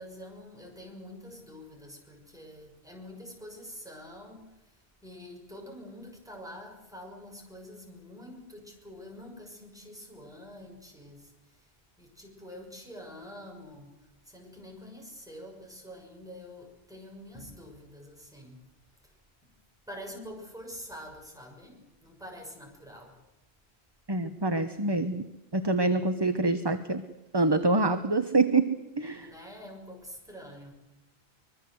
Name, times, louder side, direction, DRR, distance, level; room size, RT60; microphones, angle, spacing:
voice 1, 0.0-11.7 12.0-13.9 14.2-18.6 19.9-23.2 29.1-30.7, equal, 5° right, 0 dB, 6.5 m, -46 dB
voice 2, 24.1-25.3 25.5-27.0 27.3-29.3, right 2 dB, 25° right, 9 dB, 1.1 m, -26 dB
24.5 x 22.0 x 8.0 m, 1.0 s
omnidirectional pair, 1.0 m